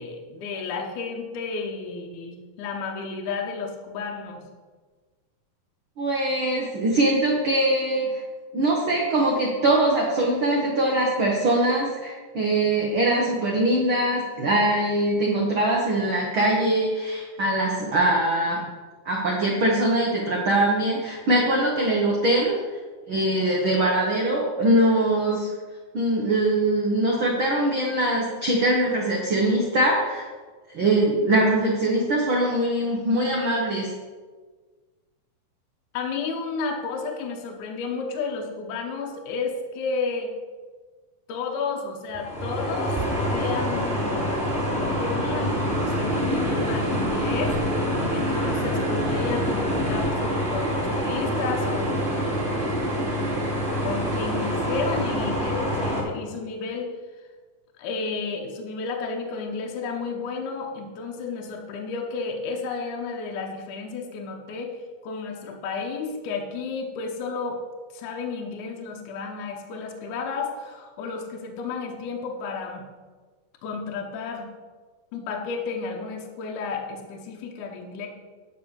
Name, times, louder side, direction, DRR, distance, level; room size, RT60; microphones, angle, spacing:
voice 1, 0.0-4.4 35.9-40.3 41.3-44.3 44.8-47.5 48.1-52.0 53.8-56.9 57.8-64.8 65.0-67.6 67.9-72.8 73.6-74.5 75.1-78.1, left 4 dB, 70° left, 1 dB, 2.1 m, -32 dB
voice 2, 6.0-8.2 8.5-18.7 19.0-22.6 23.1-25.5 25.9-30.3 30.7-33.9, right 1 dB, 80° right, -2 dB, 1.1 m, -22 dB
sound 1, 42.1-56.0, equal, 15° right, 2.3 m, -26 dB
9.9 x 5.5 x 6.7 m, 1.4 s
omnidirectional pair, 4.3 m